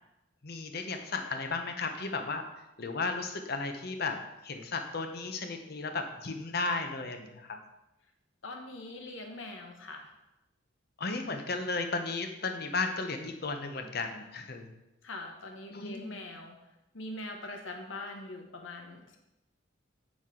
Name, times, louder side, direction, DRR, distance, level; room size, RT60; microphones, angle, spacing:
voice 1, 0.4-2.4 2.8-4.2 4.4-7.6 11.0-14.7 15.7-16.2, left 3 dB, 50° left, 6 dB, 0.8 m, -34 dB
voice 2, 8.4-10.1 15.0-16.6 16.9-19.2, left 2 dB, 75° left, 3 dB, 1.1 m, -42 dB
7.4 x 6.2 x 3.7 m, 0.93 s
head